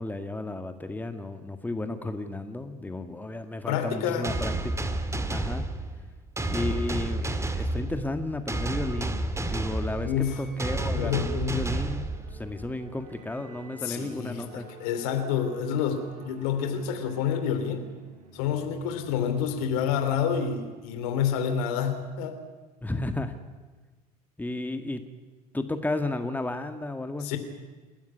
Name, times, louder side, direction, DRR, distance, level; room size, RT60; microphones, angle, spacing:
voice 1, 0.0-4.7 5.3-5.6 6.5-9.2 9.5-14.7 22.8-23.3 24.4-25.0 25.5-27.4, left 2 dB, 10° left, 7 dB, 1.9 m, -33 dB
voice 2, 3.7-4.3 10.0-10.4 10.9-11.7 13.8-17.9 18.3-22.4 27.2-27.4, left 8 dB, 65° left, 8 dB, 2.9 m, -28 dB
sound 1, 4.2-12.7, right 2 dB, 15° right, 2.3 m, -31 dB
sound 2, 9.3-21.4, right 2 dB, 75° right, 5.3 m, -52 dB
29.0 x 13.0 x 9.8 m, 1.3 s
figure-of-eight pair, 65°, 20 cm